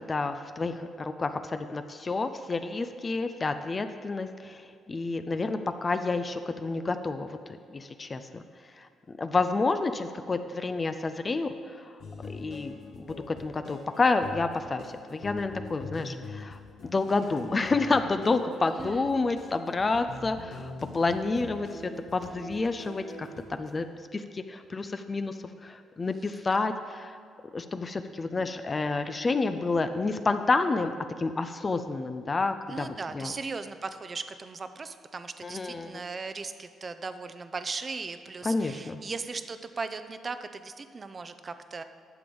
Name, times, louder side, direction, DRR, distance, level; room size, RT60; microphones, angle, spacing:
voice 1, 0.1-8.4 8.8-8.9 9.2-11.9 12.2-12.7 13.1-16.6 16.9-23.3 23.6-23.9 24.1-25.3 25.6-27.2 27.5-33.3 35.4-36.0 38.4-39.0, left 3 dB, 30° left, 9 dB, 0.5 m, -29 dB
sound 1, 12.0-23.7, left 3 dB, 70° left, 1.6 m, -43 dB
voice 2, 18.6-19.0 28.3-28.5 32.7-41.8, right 4 dB, 35° right, 10 dB, 0.6 m, -38 dB
11.0 x 6.9 x 5.4 m, 2.3 s
cardioid pair, 90°, 0 cm